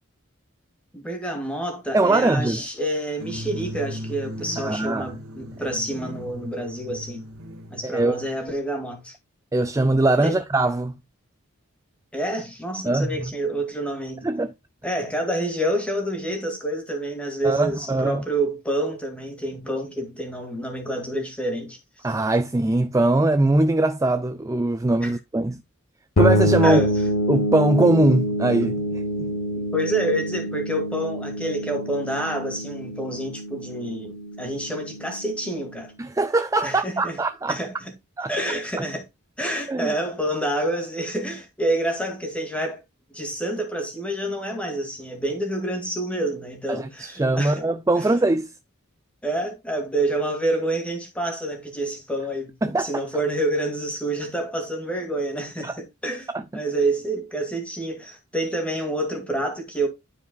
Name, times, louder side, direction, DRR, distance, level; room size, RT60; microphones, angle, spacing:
voice 1, 0.9-7.2 7.7-9.2 10.2-10.4 12.1-14.3 14.8-22.1 25.0-25.2 26.6-26.9 29.5-35.9 36.6-37.2 37.5-37.9 38.3-39.0 39.4-42.8 43.1-47.6 48.0-48.1 49.2-59.9, right 1 dB, 5° left, 2.1 m, -28 dB
voice 2, 1.9-2.6 4.6-5.1 7.8-8.2 9.5-10.9 12.9-13.3 14.2-14.5 17.4-18.2 22.0-25.6 26.2-26.8 27.3-29.3 36.0-37.6 38.2-38.3 39.7-39.9 46.7-48.5 52.6-53.0 55.6-55.7 56.3-56.4, right 2 dB, 15° right, 0.3 m, -21 dB
sound 1, 3.2-8.6, equal, 85° right, 1.9 m, -37 dB
sound 2, 26.2-35.8, equal, 65° left, 0.8 m, -26 dB
12.5 x 4.8 x 2.3 m
head